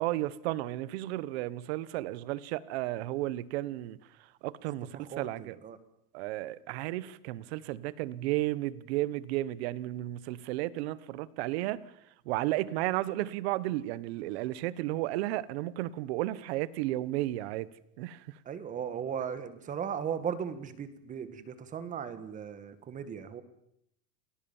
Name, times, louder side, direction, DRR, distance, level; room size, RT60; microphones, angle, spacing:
voice 1, 0.0-4.0 4.4-5.6 6.1-11.9 12.2-17.7 18.0-18.4, right 16 dB, 45° right, 1.2 m, -33 dB
voice 2, 4.9-5.8 18.4-23.4, right 7 dB, 15° right, 1.6 m, -37 dB
29.5 x 20.5 x 7.2 m
supercardioid pair, 165°, 46 cm